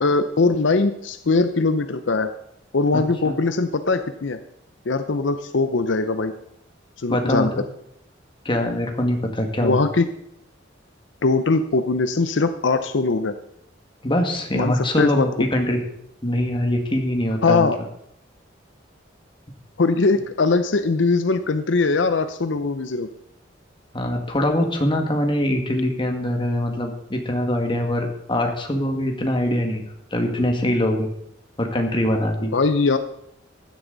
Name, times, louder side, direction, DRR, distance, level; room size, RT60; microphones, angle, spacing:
voice 1, 0.0-2.3 2.7-4.4 4.9-6.3 7.0-7.5 9.6-10.1 11.2-13.4 14.5-15.3 17.4-17.8 19.8-23.1 32.5-33.0, left 3 dB, 70° left, 10 dB, 0.7 m, -21 dB
voice 2, 2.9-3.3 7.1-7.5 8.5-9.8 14.0-15.8 16.2-17.7 23.9-29.8 30.1-31.1 31.6-32.5, left 1 dB, 25° left, 3 dB, 1.9 m, -23 dB
15.5 x 11.5 x 4.0 m, 0.76 s
head